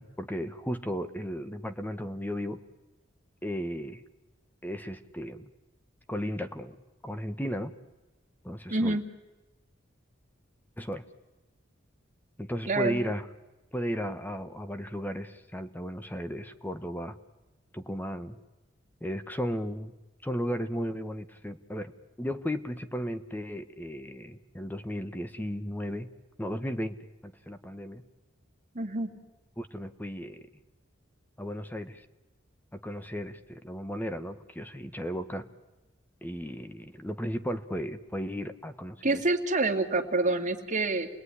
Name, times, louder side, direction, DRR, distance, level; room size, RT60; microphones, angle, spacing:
voice 1, 0.0-2.6 3.4-4.0 4.6-5.5 6.1-6.8 7.0-7.7 8.4-9.0 10.8-11.1 12.4-13.2 13.7-17.2 17.7-18.4 19.0-19.9 20.2-26.1 26.4-27.0 27.2-28.0 29.6-30.5 31.4-32.0 32.7-35.5 36.2-39.2, equal, 10° left, 10 dB, 1.2 m, -35 dB
voice 2, 8.7-9.0 12.7-13.0 28.7-29.1 39.0-41.1, right 2 dB, 40° right, 4 dB, 2.4 m, -27 dB
29.0 x 20.5 x 10.0 m, 1.1 s
head